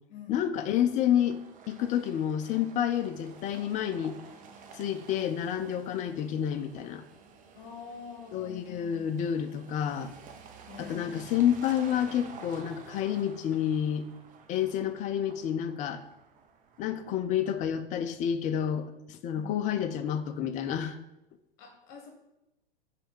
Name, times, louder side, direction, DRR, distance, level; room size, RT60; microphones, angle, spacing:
voice 1, 0.3-1.4 1.7-4.2 4.7-7.0 8.3-10.2 10.8-14.1 14.5-16.0 16.8-21.0, left 9 dB, 25° left, 11 dB, 0.5 m, -29 dB
sound 1, 0.6-17.6, right 5 dB, 25° right, 0.7 m, -51 dB
voice 2, 7.5-9.1 10.7-11.2 19.3-19.5 21.6-22.1, left 5 dB, 55° left, 3 dB, 1.3 m, -45 dB
5.5 x 3.3 x 5.3 m, 0.89 s
hypercardioid pair, 105°, 29 cm